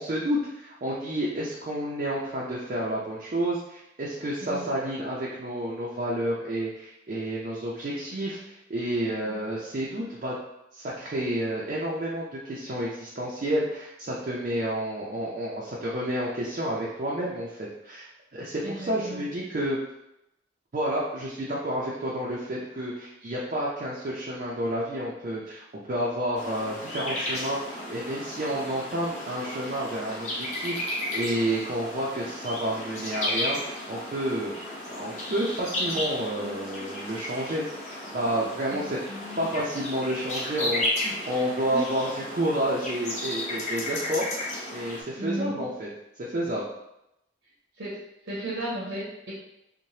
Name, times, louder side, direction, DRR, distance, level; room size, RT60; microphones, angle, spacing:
voice 1, 0.0-10.4 10.7-19.8 20.7-34.5 34.9-39.0 39.4-44.3 44.7-45.9 46.2-46.7, right 1 dB, 45° right, -5 dB, 0.4 m, -30 dB
voice 2, 4.4-4.7 9.2-9.4 18.6-19.3 36.3-36.6 38.7-39.5 41.7-41.9 45.2-45.7 47.8-48.0 48.2-49.3, right 1 dB, 80° right, -6 dB, 0.7 m, -35 dB
sound 1, 26.3-45.0, left 1 dB, 40° left, 0.6 m, -34 dB
3.1 x 2.1 x 2.7 m, 0.86 s
head